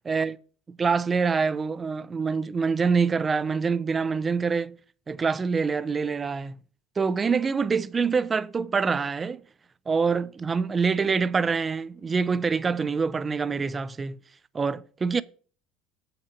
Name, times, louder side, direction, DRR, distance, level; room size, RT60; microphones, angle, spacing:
voice 1, 0.1-0.4 0.7-4.8 5.1-6.6 7.0-9.4 9.9-14.2 14.5-15.2, right 5 dB, 20° right, 0.4 m, -25 dB
8.2 x 5.9 x 6.5 m
cardioid pair, 130°, 0 cm